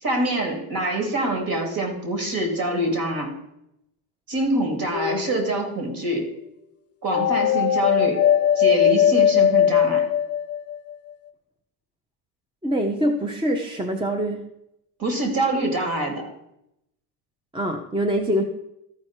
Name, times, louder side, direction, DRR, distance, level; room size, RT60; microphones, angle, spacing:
voice 1, 0.0-3.3 4.3-6.3 7.0-8.2 8.5-10.1 15.0-16.3, right 1 dB, 45° right, 4 dB, 2.9 m, -25 dB
sound 1, 4.9-5.7 7.1-10.9, left 9 dB, 30° left, 0.6 m, -19 dB
voice 2, 12.6-14.5 17.5-18.4, equal, 10° right, 4 dB, 0.7 m, -24 dB
14.0 x 4.7 x 4.5 m, 0.81 s
cardioid pair, 115°, 49 cm